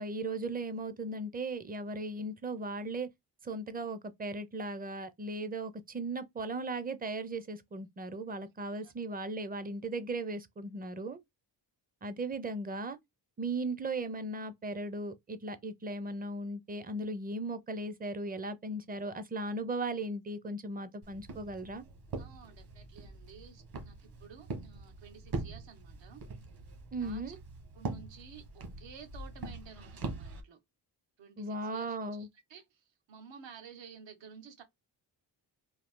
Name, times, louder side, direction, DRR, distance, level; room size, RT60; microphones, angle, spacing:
voice 1, 0.0-3.1 3.4-11.2 12.0-13.0 13.4-21.8 26.9-27.4 31.4-32.3, right 2 dB, 20° right, 0.5 m, -37 dB
Walk footsteps, 21.0-30.4, right 3 dB, 55° right, 1.3 m, -43 dB
voice 2, 22.2-26.2 26.9-27.4 27.7-30.6 31.2-34.6, right 6 dB, 80° right, 1.2 m, -53 dB
3.9 x 2.6 x 3.6 m
wide cardioid pair, 130°, 44 cm